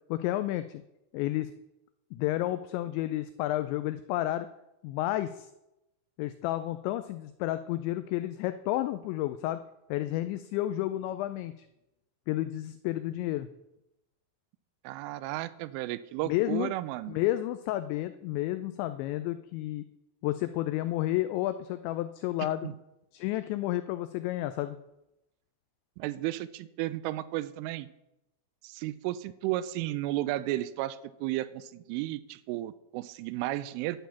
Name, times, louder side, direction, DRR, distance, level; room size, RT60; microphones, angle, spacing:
voice 1, 0.1-0.8 1.1-1.5 2.1-4.5 4.8-5.5 6.2-9.6 9.9-11.7 12.3-13.5 16.2-16.7 17.1-19.8 20.2-22.7 23.1-24.8, left 15 dB, 90° left, 11 dB, 2.5 m, -31 dB
voice 2, 14.8-17.2 22.4-22.7 26.0-27.9 28.6-34.1, right 16 dB, 85° right, 16 dB, 3.0 m, -33 dB
11.5 x 5.8 x 8.4 m, 0.90 s
omnidirectional pair, 5.7 m